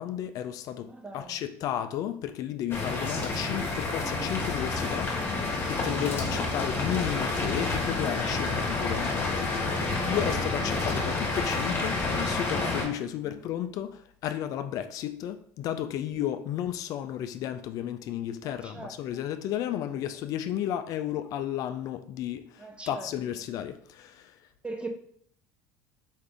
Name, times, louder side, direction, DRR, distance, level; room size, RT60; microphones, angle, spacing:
voice 1, 0.0-5.1 5.4-24.3, left 11 dB, 55° left, 0.4 m, -33 dB
voice 2, 0.8-1.4 6.2-6.5 10.6-10.8 13.2-13.4 18.4-19.0 22.6-23.1 24.6-24.9, right 3 dB, 15° right, 0.6 m, -40 dB
sound 1, 2.7-12.9, left 3 dB, 30° left, 1.1 m, -29 dB
4.7 x 2.5 x 3.4 m
supercardioid pair, 95°, 7 cm